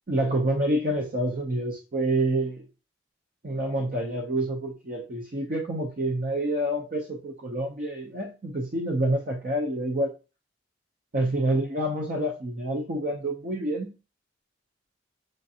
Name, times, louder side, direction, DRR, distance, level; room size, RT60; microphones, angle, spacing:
voice 1, 0.1-2.7 3.4-10.1 11.1-13.9, right 1 dB, 45° right, 1 dB, 0.6 m, -27 dB
6.3 x 2.5 x 2.7 m, 0.32 s
head